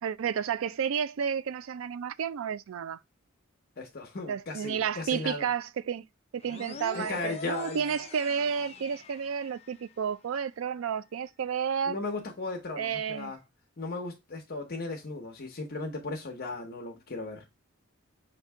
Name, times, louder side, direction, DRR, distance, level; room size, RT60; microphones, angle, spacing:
voice 1, 0.0-3.0 4.3-6.1 6.3-12.0 12.8-13.3, right 7 dB, 75° right, 0.4 m, -31 dB
voice 2, 3.8-5.5 6.9-7.8 11.9-13.4 13.8-17.4, left 3 dB, 50° left, 0.8 m, -36 dB
sound 1, 6.4-9.9, left 4 dB, 30° left, 0.4 m, -44 dB
5.9 x 2.7 x 3.3 m
head